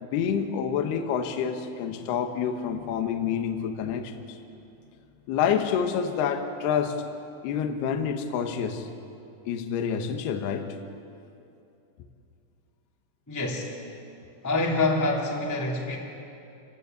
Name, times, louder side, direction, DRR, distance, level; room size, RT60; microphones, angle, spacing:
voice 1, 0.0-4.4 5.3-7.0 7.4-8.9 9.5-10.8, left 7 dB, 70° left, 6 dB, 3.0 m, -28 dB
voice 2, 13.3-13.8 14.4-16.0, left 2 dB, 5° left, -3 dB, 1.9 m, -26 dB
27.0 x 19.0 x 8.1 m, 2.6 s
omnidirectional pair, 5.5 m